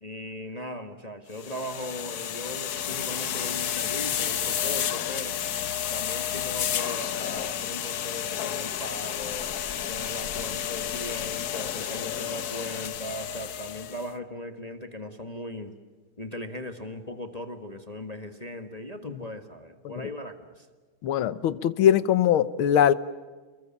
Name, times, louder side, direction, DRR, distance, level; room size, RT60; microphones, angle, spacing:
voice 1, 0.0-5.4 5.9-9.5 9.9-15.7 16.2-20.7, left 1 dB, 20° left, 6 dB, 1.5 m, -38 dB
sound 1, 1.3-14.1, left 10 dB, 55° left, 1.3 m, -31 dB
voice 2, 21.0-22.9, left 10 dB, 80° left, 15 dB, 1.8 m, -21 dB
29.5 x 22.5 x 7.2 m, 1.4 s
omnidirectional pair, 2.3 m